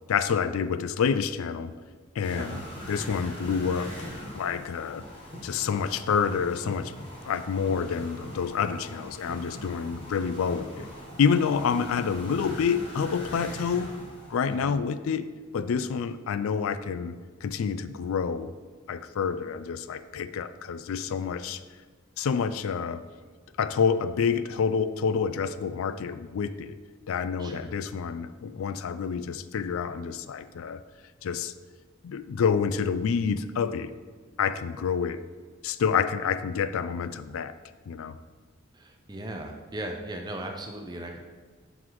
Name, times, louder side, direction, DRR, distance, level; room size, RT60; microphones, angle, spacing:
voice 1, 0.1-1.7 2.2-2.6 2.9-3.9 4.3-5.0 5.4-7.0 7.2-10.9 11.2-13.9 14.3-15.3 15.5-17.2 17.4-18.5 18.9-21.6 22.2-23.0 23.6-26.8 27.1-30.8 31.2-31.5 32.0-33.9 34.4-35.2 35.6-37.5 37.9-38.2, left 6 dB, 70° left, 13 dB, 0.3 m, -28 dB
sound 1, 2.2-14.6, equal, 25° left, 1.3 m, -41 dB
voice 2, 38.7-41.2, right 1 dB, 20° right, 3 dB, 0.5 m, -38 dB
11.0 x 3.9 x 3.0 m, 1.5 s
head